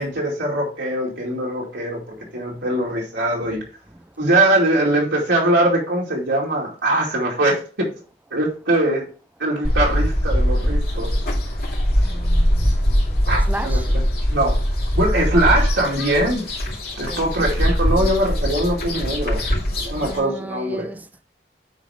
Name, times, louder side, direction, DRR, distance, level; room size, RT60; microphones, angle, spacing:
voice 1, 0.0-2.0 2.3-3.6 4.2-7.9 8.3-9.1 9.4-11.1 13.3-14.0 14.3-14.6 15.0-16.5 17.0-19.4 19.7-20.9, right 1 dB, 90° right, 2.5 m, -21 dB
sound 1, 9.6-20.2, equal, 60° left, 2.7 m, -21 dB
voice 2, 12.1-12.7 13.3-13.8 17.1-17.3 20.0-21.0, right 1 dB, 10° right, 0.4 m, -33 dB
9.2 x 3.7 x 4.9 m
head